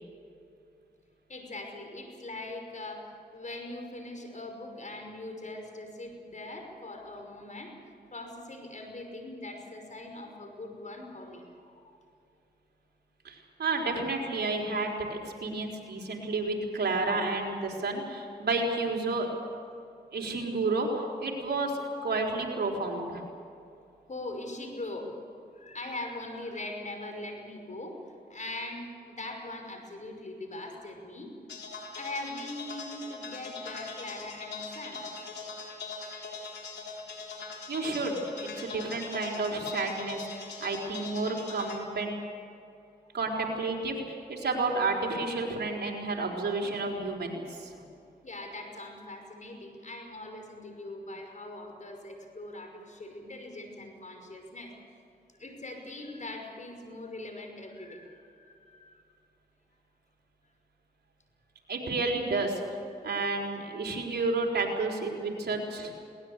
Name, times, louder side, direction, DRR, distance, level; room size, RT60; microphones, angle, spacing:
voice 1, 1.3-7.7 8.1-12.0 24.1-25.2 25.5-28.0 28.3-31.3 31.9-35.0 48.2-54.7 55.4-59.0, left 2 dB, 45° left, 3 dB, 5.6 m, -41 dB
voice 2, 13.2-19.3 20.1-23.2 37.7-40.3 40.6-42.1 43.1-47.8 61.7-62.6 63.0-65.9, right 3 dB, 70° right, 0 dB, 4.2 m, -31 dB
sound 1, 31.5-41.8, left 4 dB, 80° left, 3.8 m, -41 dB
21.0 x 19.0 x 8.2 m, 2.5 s
cardioid pair, 50°, 18 cm